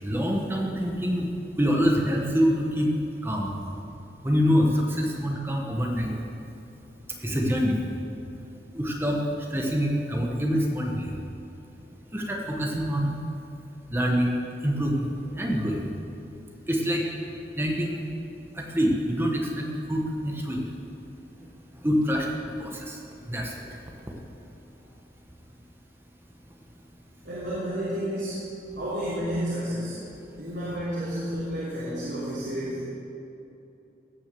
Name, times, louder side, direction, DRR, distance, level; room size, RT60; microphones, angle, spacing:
voice 1, 0.0-1.3 1.6-2.9 3.2-3.5 4.2-6.1 7.2-7.8 8.7-9.2 9.5-11.1 12.1-13.2 13.9-14.3 14.6-15.1 15.4-15.9 16.7-17.0 17.6-18.0 18.6-20.6 21.8-22.3 22.6-23.0 23.3-23.5, equal, 15° right, 0 dB, 1.2 m, -25 dB
voice 2, 27.2-28.4 28.8-30.0 30.4-32.8, equal, 90° right, -10 dB, 3.1 m, -31 dB
17.0 x 6.4 x 6.9 m, 2.8 s
head